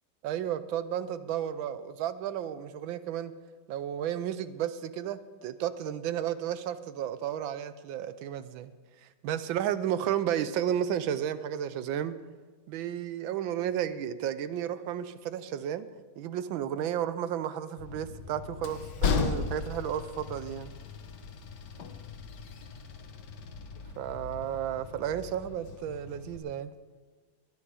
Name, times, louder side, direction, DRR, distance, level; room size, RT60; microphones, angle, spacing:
voice 1, 0.2-3.3 3.7-8.7 9.0-12.1 12.7-15.9 16.2-20.7 24.0-26.7, right 10 dB, 80° right, 13 dB, 1.4 m, -33 dB
Train, 17.8-26.4, left 5 dB, 65° left, 1.5 m, -36 dB
21.5 x 8.7 x 4.9 m, 1.4 s
omnidirectional pair, 2.1 m